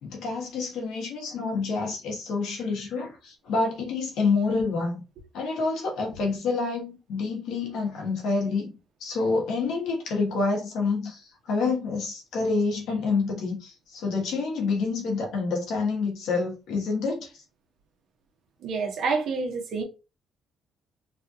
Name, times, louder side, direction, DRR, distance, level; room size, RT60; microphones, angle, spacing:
voice 1, 0.0-5.0 5.3-8.7 9.0-17.3, left 4 dB, 80° left, 1.3 m, -28 dB
voice 2, 18.6-19.8, right 4 dB, 70° right, 1.0 m, -28 dB
3.3 x 2.4 x 2.7 m
cardioid pair, 90°, 0 cm